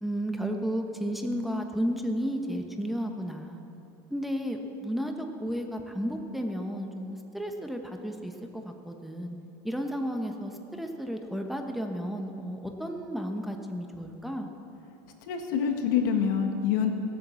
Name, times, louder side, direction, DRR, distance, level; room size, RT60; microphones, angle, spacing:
voice 1, 0.0-3.6 4.1-9.4 9.6-14.5, equal, ahead, 3 dB, 1.2 m, -33 dB
voice 2, 15.2-16.9, left 7 dB, 85° left, 4 dB, 1.7 m, -26 dB
17.5 x 8.5 x 7.1 m, 2.8 s
supercardioid pair, 125°, 10 cm